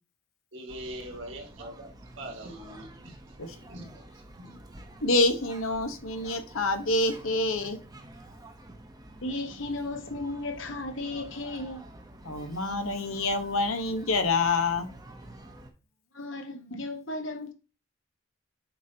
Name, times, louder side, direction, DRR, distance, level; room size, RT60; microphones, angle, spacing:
voice 1, 0.5-1.9 2.2-3.2 3.7-4.0 4.4-4.6, right 1 dB, 65° right, 2.0 m, -42 dB
sound 1, 0.7-15.7, right 1 dB, 20° right, 0.8 m, -49 dB
voice 2, 5.0-7.8 12.2-14.9, left 2 dB, 85° left, 1.0 m, -27 dB
voice 3, 9.2-11.8 16.1-17.5, left 2 dB, 65° left, 1.2 m, -35 dB
7.3 x 5.3 x 2.8 m
head